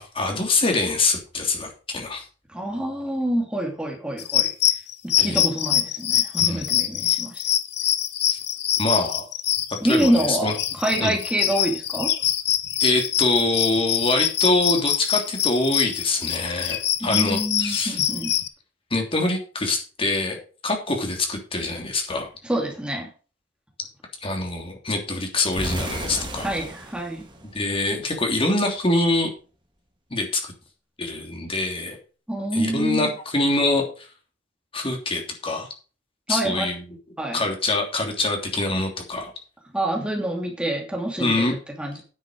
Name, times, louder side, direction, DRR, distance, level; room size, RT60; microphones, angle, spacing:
voice 1, 0.0-2.2 5.2-5.4 6.4-6.7 8.3-8.4 8.8-9.3 9.9-10.5 11.0-11.2 12.8-18.0 18.9-22.3 24.2-26.5 27.5-29.3 30.1-30.5 31.0-32.0 32.5-34.1 34.7-35.7 36.3-36.8 37.3-39.3 41.2-41.6, left 2 dB, 30° left, 2 dB, 3.1 m, -24 dB
voice 2, 2.5-4.5 5.0-7.4 9.8-12.1 17.0-18.3 22.4-23.1 26.4-27.3 32.3-33.1 36.3-36.7 37.2-37.4 39.7-42.0, right 1 dB, 5° right, 0 dB, 2.4 m, -26 dB
sound 1, 4.2-18.5, left 11 dB, 60° left, 1.1 m, -24 dB
sound 2, 25.5-28.4, right 1 dB, 25° right, 2.3 m, -34 dB
10.0 x 8.3 x 5.1 m, 0.36 s
head